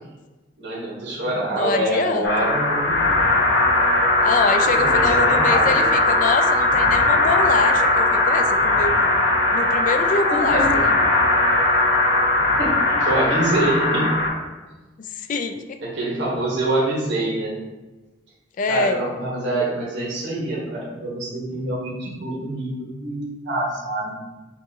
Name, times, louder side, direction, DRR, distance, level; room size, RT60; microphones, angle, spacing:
voice 1, 0.6-3.0 4.6-5.9 10.3-10.8 12.6-14.1 15.8-17.5 18.7-24.2, right 1 dB, 65° right, -5 dB, 1.4 m, -25 dB
voice 2, 1.5-2.5 4.2-9.0 9.5-10.9 15.0-15.8 18.6-19.0, left 4 dB, 45° left, 7 dB, 0.3 m, -25 dB
sound 1, 2.2-14.3, left 2 dB, 75° left, 0.9 m, -19 dB
7.1 x 2.5 x 2.8 m, 1.2 s
head